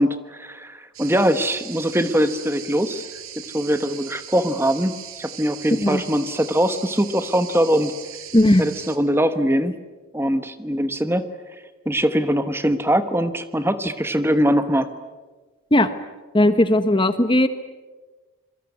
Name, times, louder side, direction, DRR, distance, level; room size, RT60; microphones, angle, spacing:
voice 1, 0.0-3.0 3.5-7.9 8.6-9.8 10.1-11.3 11.8-14.9, equal, 10° right, 10 dB, 1.2 m, -22 dB
sound 1, 0.9-9.0, right 10 dB, 65° right, 2.6 m, -39 dB
voice 2, 8.3-8.7 15.7-15.9 16.3-17.5, left 1 dB, 20° left, 10 dB, 1.0 m, -17 dB
26.5 x 22.5 x 9.6 m, 1.3 s
head